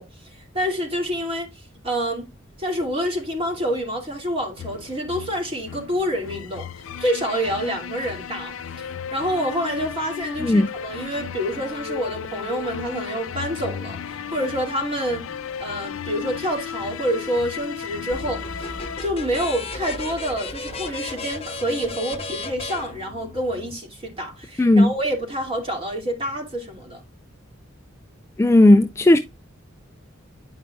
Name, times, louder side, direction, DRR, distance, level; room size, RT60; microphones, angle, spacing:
voice 1, 0.0-2.3 2.6-15.3 15.6-27.0, equal, 30° right, 2.4 m, -27 dB
sound 1, 4.6-19.0, left 7 dB, 75° left, 0.4 m, -35 dB
sound 2, 18.1-23.7, left 3 dB, 30° left, 0.8 m, -34 dB
voice 2, 24.6-24.9 28.4-29.2, left 1 dB, 15° left, 0.3 m, -14 dB
9.7 x 5.2 x 2.3 m
head